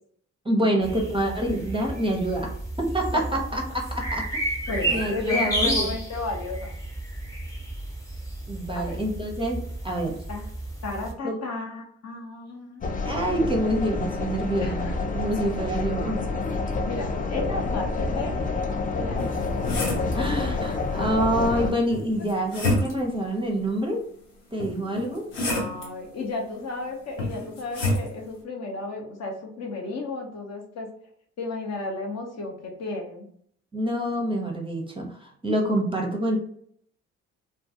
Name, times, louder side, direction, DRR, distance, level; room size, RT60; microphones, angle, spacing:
voice 1, 0.4-4.3 4.9-5.9 8.5-10.2 11.2-11.4 13.0-16.2 20.1-24.1 24.5-25.3 33.7-36.4, right 1 dB, 15° right, 1 dB, 0.6 m, -27 dB
sound 1, 0.8-11.1, right 1 dB, 10° left, 0.9 m, -32 dB
voice 2, 4.7-6.8 8.7-9.0 10.3-10.5 10.8-12.9 14.6-15.0 16.8-18.4 18.9-19.5 25.0-30.9 31.4-33.3, left 3 dB, 45° left, 1 dB, 0.8 m, -34 dB
sound 2, 12.8-21.7, left 3 dB, 25° left, 0.4 m, -28 dB
sound 3, 19.2-20.2 21.9-23.1 24.6-25.9 27.2-28.1, left 1 dB, 90° left, 0.6 m, -28 dB
2.3 x 2.3 x 2.7 m, 0.66 s
hypercardioid pair, 45°, 36 cm